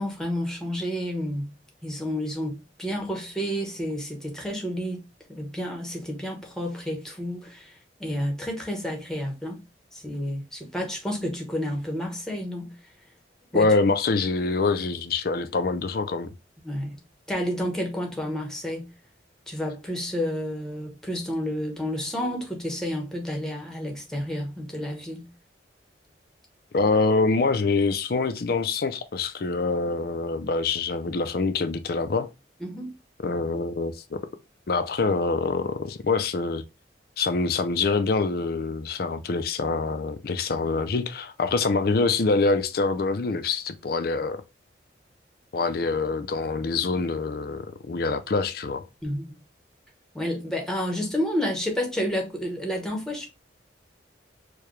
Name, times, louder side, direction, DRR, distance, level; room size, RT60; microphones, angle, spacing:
voice 1, 0.0-1.5 1.8-5.0 5.3-9.6 9.9-12.7 13.5-13.7 16.6-17.0 17.3-18.9 19.5-25.3 32.6-32.9 49.0-49.4 50.1-53.3, equal, 5° left, 1.0 m, -30 dB
voice 2, 13.5-16.3 26.7-32.3 33.2-34.2 34.7-36.6 37.2-44.4 45.5-48.9, left 3 dB, 55° left, 0.5 m, -25 dB
4.7 x 2.3 x 3.1 m
head